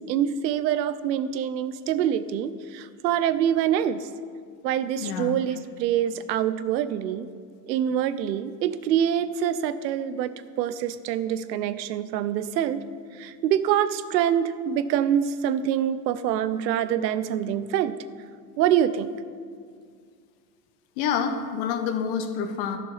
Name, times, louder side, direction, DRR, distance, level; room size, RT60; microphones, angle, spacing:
voice 1, 0.1-4.1 4.6-7.3 7.6-12.8 13.2-18.0 18.6-19.1, right 10 dB, 80° right, 14 dB, 0.8 m, -25 dB
voice 2, 5.0-5.4 21.0-22.8, left 7 dB, 50° left, 6 dB, 1.3 m, -27 dB
12.5 x 6.7 x 5.7 m, 2.1 s
supercardioid pair, 115°, 49 cm